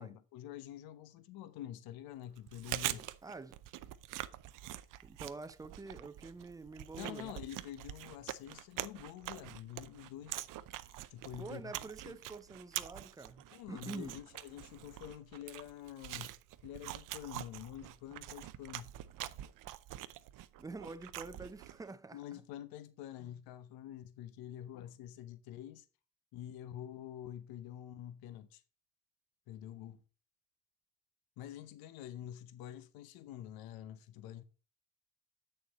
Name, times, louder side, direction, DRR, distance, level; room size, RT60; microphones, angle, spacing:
voice 1, 0.0-3.1 7.0-10.4 11.1-12.2 13.5-16.3 16.6-19.0 22.1-25.9 26.3-28.6 29.5-30.0 31.4-34.4, left 11 dB, 70° left, 0.9 m, -47 dB
Chewing mastication, 2.4-21.9, right 14 dB, 60° right, 0.7 m, -45 dB
voice 2, 3.2-3.6 5.0-7.3 11.4-14.2 20.6-22.4, right 3 dB, 10° right, 0.5 m, -47 dB
8.1 x 6.8 x 4.1 m
cardioid pair, 120°, 37 cm